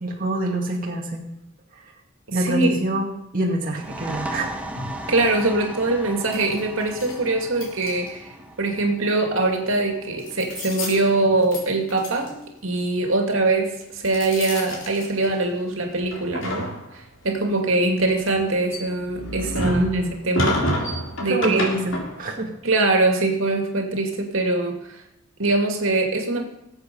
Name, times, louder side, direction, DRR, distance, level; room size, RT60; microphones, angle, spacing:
voice 1, 0.0-1.3 1.8-1.9 2.3-4.5 19.6-20.1 21.2-22.5, right 1 dB, 45° right, -1 dB, 2.0 m, -25 dB
voice 2, 2.3-2.8 4.8-12.3 12.6-20.6 21.2-21.7 22.6-25.0 25.4-26.4, right 2 dB, 80° right, 3 dB, 2.4 m, -23 dB
sound 1, 3.7-11.1, right 1 dB, 5° right, 1.3 m, -37 dB
sound 2, 6.3-7.2 7.6-8.3 9.5-9.7 10.2-11.1 11.4-11.6 11.9-12.3 13.8-15.6 16.0-17.2 17.8-22.4, left 1 dB, 70° left, 3.6 m, -30 dB
19.5 x 8.2 x 5.4 m, 0.85 s
head